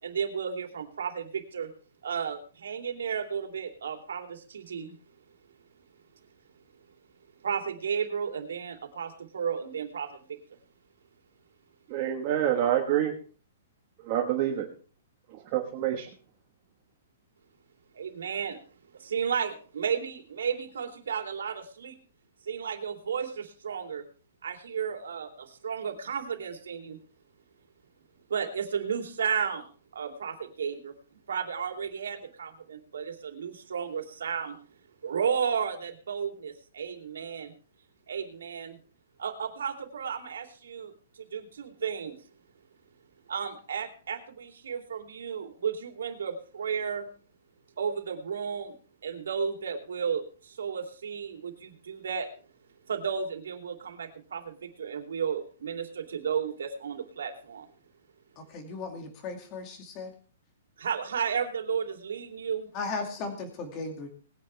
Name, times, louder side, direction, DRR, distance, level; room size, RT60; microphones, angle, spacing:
voice 1, 0.0-1.7 2.0-5.0 7.4-10.4 17.9-18.6 18.9-22.0 22.4-24.0 24.4-27.0 28.3-29.7 29.9-30.9 31.3-34.6 35.0-37.5 38.1-38.8 39.2-42.2 43.3-47.1 47.8-48.7 49.0-52.3 52.9-57.7 60.8-62.7, right 7 dB, 80° right, 4 dB, 2.9 m, -33 dB
voice 2, 11.9-13.1 14.0-14.7 15.4-16.1, right 11 dB, 25° right, 1 dB, 1.5 m, -27 dB
voice 3, 58.4-60.1 62.7-64.1, left 4 dB, 20° left, 5 dB, 2.3 m, -36 dB
20.0 x 10.0 x 3.4 m, 0.40 s
hypercardioid pair, 175°, 0 cm